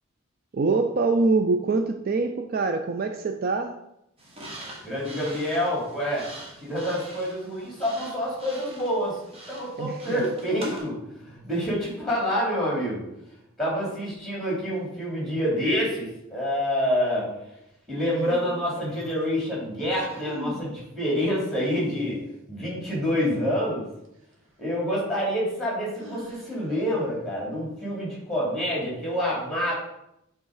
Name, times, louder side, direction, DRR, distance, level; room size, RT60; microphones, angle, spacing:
voice 1, 0.5-3.8 9.8-10.2, right 3 dB, 45° right, 6 dB, 0.4 m, -24 dB
sound 1, 4.2-10.8, right 1 dB, 30° right, 1.5 m, -43 dB
voice 2, 4.8-6.3 6.6-9.2 9.5-11.0 11.3-13.0 13.6-17.3 17.9-22.2 22.5-23.9 24.6-29.7, equal, ahead, -5 dB, 2.9 m, -27 dB
sound 2, 18.0-19.3 19.8-20.7 21.2-22.1 24.0-24.1 26.0-26.8, equal, 65° right, 1.4 m, -40 dB
8.0 x 3.6 x 4.8 m, 0.83 s
head